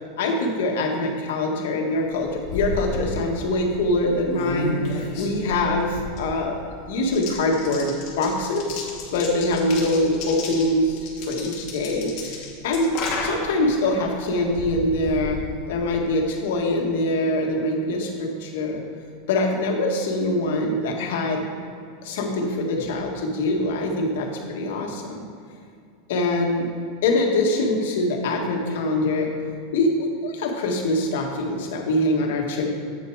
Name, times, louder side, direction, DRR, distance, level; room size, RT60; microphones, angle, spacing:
voice 1, 0.2-12.9 13.2-15.4 15.7-18.8 19.3-21.4 22.0-25.2 26.1-26.7 27.0-29.3 29.7-32.7, left 2 dB, 70° left, 1 dB, 1.7 m, -24 dB
sound 1, 2.0-16.1, left 3 dB, 40° left, 2.3 m, -34 dB
8.5 x 6.7 x 4.8 m, 2.4 s
supercardioid pair, 155°, 0 cm